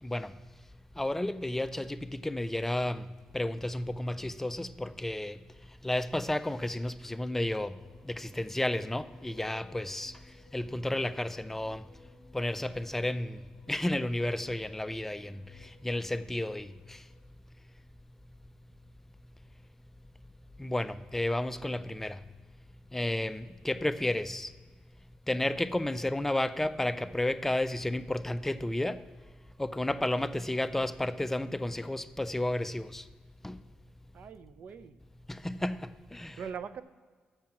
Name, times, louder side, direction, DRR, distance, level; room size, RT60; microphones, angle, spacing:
voice 1, 0.0-0.3 1.0-3.1 3.3-5.4 5.8-7.8 8.0-10.2 10.5-11.8 12.3-13.4 13.7-17.0 20.6-22.2 22.9-24.5 25.3-29.0 29.6-33.1 33.4-33.6 35.3-36.4, left 1 dB, 10° left, 0.3 m, -32 dB
sound 1, 7.8-17.2, left 3 dB, 40° left, 1.1 m, -61 dB
voice 2, 34.1-35.0 36.4-36.8, right 7 dB, 60° right, 0.5 m, -41 dB
7.4 x 6.6 x 5.8 m
cardioid pair, 100°, 3 cm